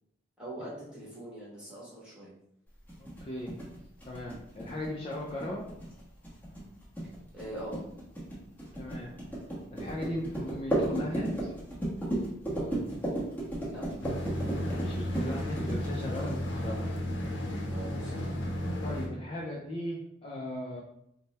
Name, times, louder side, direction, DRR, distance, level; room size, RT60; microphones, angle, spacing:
voice 1, 0.4-2.3 7.3-7.8 13.5-13.9 17.7-18.4, right 1 dB, 5° right, -8 dB, 1.3 m, -42 dB
sound 1, 2.9-16.6, right 1 dB, 10° left, 1.1 m, -34 dB
voice 2, 3.2-3.5 4.1-5.6 8.7-9.1 9.7-11.5 14.7-16.9 18.4-18.5 18.8-20.8, left 1 dB, 30° left, -3 dB, 0.4 m, -37 dB
sound 2, 14.0-19.1, equal, 65° left, 0.7 m, -33 dB
3.5 x 2.1 x 4.1 m, 0.77 s
head